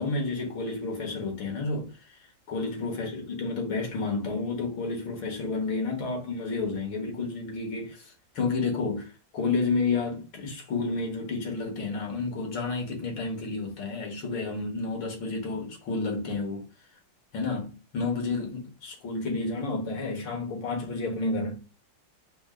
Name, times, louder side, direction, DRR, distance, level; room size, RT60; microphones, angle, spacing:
voice 1, 0.0-2.2 2.5-16.7 17.3-21.6, left 3 dB, 85° left, 2.2 m, -31 dB
4.4 x 2.5 x 4.7 m
omnidirectional pair, 2.1 m